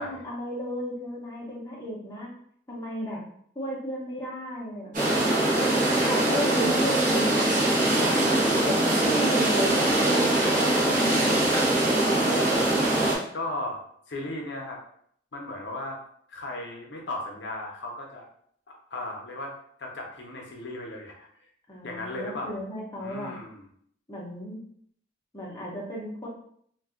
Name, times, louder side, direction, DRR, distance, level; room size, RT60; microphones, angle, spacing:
voice 1, 0.0-2.3 2.7-3.2 3.5-5.2 6.0-7.6 8.0-8.1 8.6-11.3 11.6-12.0 21.7-23.3 24.1-24.6 25.3-26.3, equal, 15° left, -4 dB, 0.7 m, -34 dB
sound 1, 4.9-13.2, right 1 dB, 40° right, 1.0 m, -22 dB
voice 2, 11.1-11.6 13.3-13.8 14.1-14.8 15.3-16.0 16.3-18.3 18.9-19.5 19.8-21.3 21.8-22.6 23.0-23.7, left 1 dB, 65° left, -1 dB, 0.6 m, -36 dB
2.4 x 2.3 x 3.6 m, 0.64 s
head